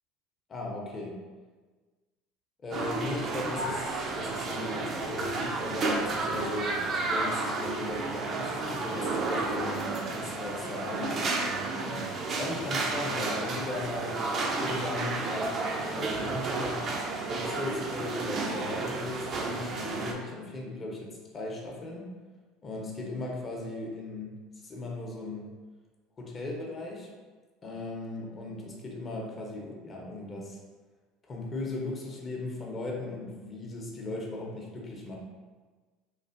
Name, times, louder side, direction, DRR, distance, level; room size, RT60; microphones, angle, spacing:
voice 1, 0.5-1.1 2.6-12.0 12.3-14.2 14.6-16.9 17.3-22.1 22.6-25.5 26.2-27.1 27.6-30.6 31.3-35.1, left 2 dB, 35° left, -1 dB, 0.7 m, -37 dB
sound 1, 2.7-20.1, right 3 dB, 45° right, 0.5 m, -32 dB
3.2 x 2.4 x 2.5 m, 1.4 s
hypercardioid pair, 75°, 0 cm